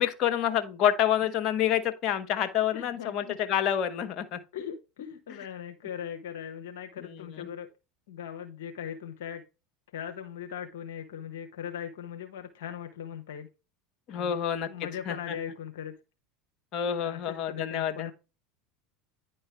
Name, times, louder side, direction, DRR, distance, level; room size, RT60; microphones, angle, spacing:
voice 1, 0.0-4.4 14.1-14.7 15.1-15.3 16.7-18.1, left 10 dB, 50° left, 1.1 m, -28 dB
voice 2, 2.7-3.4 4.5-7.7 8.1-9.4 9.9-13.5 14.1-14.4 14.7-15.9 17.0-18.1, left 8 dB, 75° left, 0.9 m, -39 dB
9.9 x 4.5 x 3.3 m
hypercardioid pair, 80°, 0 cm